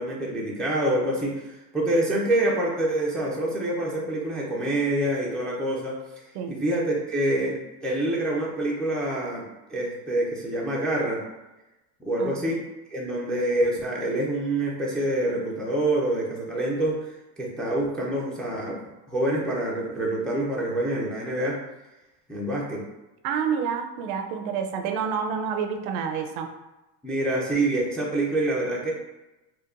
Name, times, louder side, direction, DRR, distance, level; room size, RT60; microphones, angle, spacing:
voice 1, 0.0-6.0 6.5-9.4 9.7-11.2 12.0-12.6 12.9-17.0 17.4-18.7 19.1-21.6 22.3-22.8 27.0-28.9, right 1 dB, ahead, -5 dB, 0.4 m, -26 dB
voice 2, 23.2-26.5, right 7 dB, 65° right, 5 dB, 0.6 m, -28 dB
4.5 x 2.3 x 2.4 m, 1.0 s
supercardioid pair, 115°, 47 cm